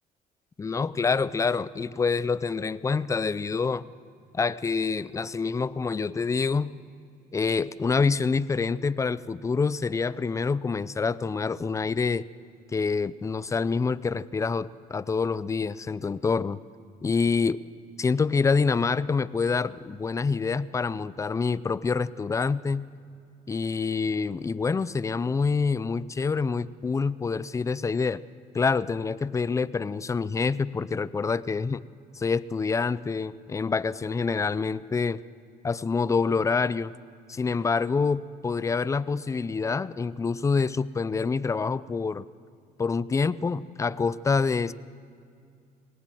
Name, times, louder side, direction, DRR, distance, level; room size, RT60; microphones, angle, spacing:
voice 1, 0.6-3.8 4.3-6.7 7.3-12.2 12.7-16.6 17.0-17.6 18.0-22.8 23.5-28.2 28.5-31.8 32.1-35.2 35.6-36.9 37.3-42.2 42.8-44.7, left 4 dB, 20° left, 18 dB, 0.4 m, -26 dB
20.0 x 18.5 x 7.6 m, 2.3 s
cardioid pair, 110°, 17 cm